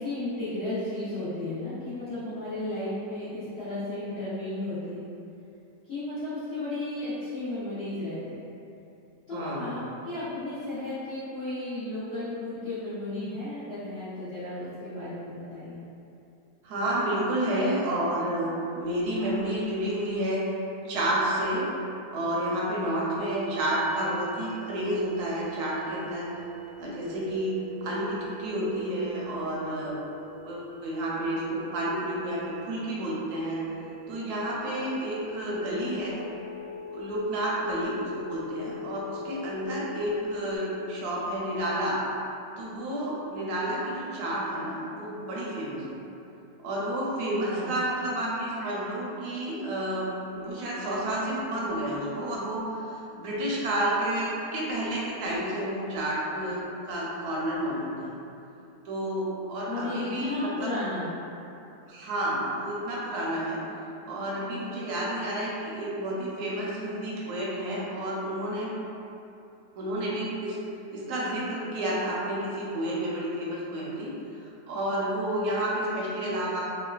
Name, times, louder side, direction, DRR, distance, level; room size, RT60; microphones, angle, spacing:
voice 1, 0.0-5.0 5.8-8.4 9.3-15.8 47.5-47.7 59.7-61.1, left 2 dB, 55° left, -15 dB, 0.7 m, -34 dB
voice 2, 9.3-9.7 16.6-20.4 20.8-21.7 22.1-26.3 26.8-27.5 27.8-30.0 30.5-33.6 34.1-36.2 36.9-42.0 42.6-46.0 46.6-58.1 58.8-60.7 61.9-63.6 64.0-68.7 69.7-70.6 70.9-76.6, right 1 dB, 70° right, -6 dB, 1.0 m, -30 dB
sound 1, 23.2-40.6, equal, 55° right, 0.6 m, -42 dB
3.0 x 2.1 x 2.2 m, 2.8 s
omnidirectional pair, 1.9 m